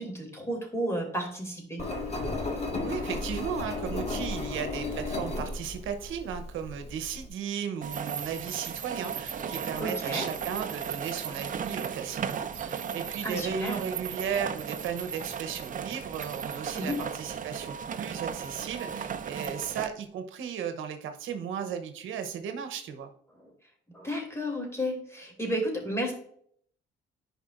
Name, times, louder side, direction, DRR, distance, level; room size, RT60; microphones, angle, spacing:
voice 1, 0.0-1.8 9.8-10.3 13.2-13.8 16.7-17.0 23.4-23.5 23.9-26.1, equal, 15° left, 2 dB, 2.8 m, -32 dB
Engine, 1.8-7.3, left 2 dB, 30° left, 1.8 m, -34 dB
voice 2, 2.8-23.1, right 7 dB, 85° right, 7 dB, 0.9 m, -35 dB
sound 1, 7.8-19.9, right 7 dB, 40° right, 0.6 m, -36 dB
10.5 x 5.2 x 2.5 m, 0.62 s
cardioid pair, 90°, 20 cm